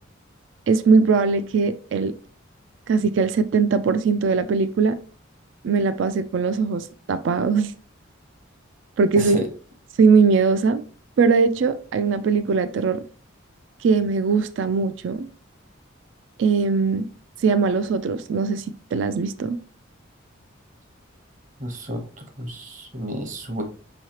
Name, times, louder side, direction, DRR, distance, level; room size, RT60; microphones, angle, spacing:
voice 1, 0.7-2.1 2.9-5.0 5.6-7.7 9.0-9.4 10.0-10.8 11.2-13.0 13.8-15.3 16.4-17.1 17.4-18.6 18.9-19.6, right 4 dB, 65° right, 0.3 m, -20 dB
voice 2, 9.2-9.5 21.6-22.0 22.4-23.6, right 1 dB, 40° right, 0.9 m, -30 dB
5.5 x 3.1 x 2.9 m
head